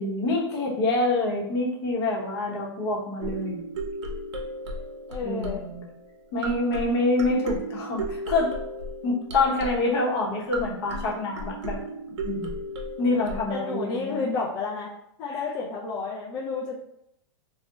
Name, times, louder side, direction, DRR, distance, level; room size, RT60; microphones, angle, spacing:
voice 1, 0.0-3.6 5.2-5.8 6.3-8.5 9.0-11.8 12.2-12.5 13.0-14.2 15.3-15.4, left 2 dB, 60° left, -2 dB, 0.8 m, -26 dB
sound 1, 3.2-13.5, right 1 dB, 75° right, 0.5 m, -35 dB
voice 2, 5.1-5.6 13.5-14.9 15.2-16.8, left 4 dB, 30° left, -3 dB, 0.3 m, -31 dB
2.7 x 2.1 x 2.2 m, 0.78 s
hypercardioid pair, 125°, 15 cm